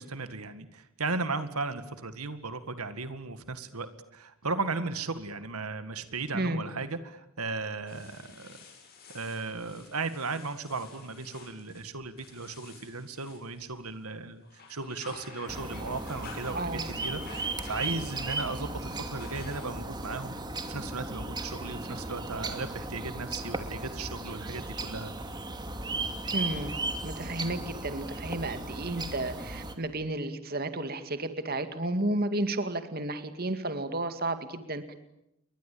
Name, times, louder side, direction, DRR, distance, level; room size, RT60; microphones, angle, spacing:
voice 1, 0.0-8.6 9.1-20.4 20.7-25.1, right 3 dB, 90° right, 11 dB, 2.0 m, -36 dB
sound 1, 7.9-14.0 14.4-20.0, left 4 dB, 45° left, 7.5 m, -51 dB
sound 2, 15.5-29.8, right 2 dB, 20° right, 2.5 m, -36 dB
voice 2, 16.5-16.9 26.3-26.7 27.0-34.9, right 2 dB, 45° right, 9 dB, 2.3 m, -32 dB
30.0 x 23.0 x 8.7 m, 0.83 s
head